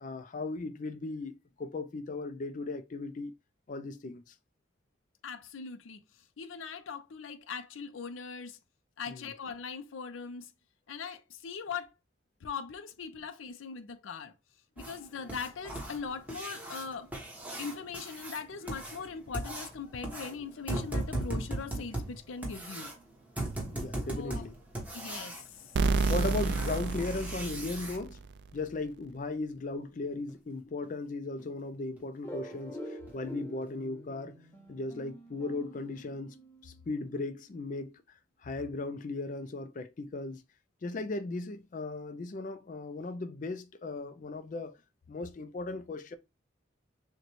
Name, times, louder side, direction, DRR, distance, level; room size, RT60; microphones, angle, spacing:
voice 1, 0.0-3.3 3.7-4.3 9.1-9.3 23.6-24.5 26.1-28.2 28.5-34.4 34.7-36.4 36.6-40.4 40.8-44.8 45.1-46.2, left 3 dB, 40° left, 0.4 m, -37 dB
voice 2, 5.2-6.0 6.4-8.6 9.0-10.5 10.9-11.9 12.4-14.3 14.8-17.1 17.6-22.9 24.1-24.4 24.9-25.6, left 5 dB, 90° left, 0.5 m, -40 dB
sound 1, 14.8-28.0 30.3-30.4 30.8-30.9 31.4-31.5 32.0-32.1 32.5-32.7 33.1-33.2 33.6-33.7, right 1 dB, 10° right, 1.0 m, -39 dB
sound 2, 25.8-28.5, right 4 dB, 60° right, 0.3 m, -30 dB
sound 3, 32.2-36.8, equal, 10° left, 0.7 m, -46 dB
6.4 x 2.2 x 3.0 m
head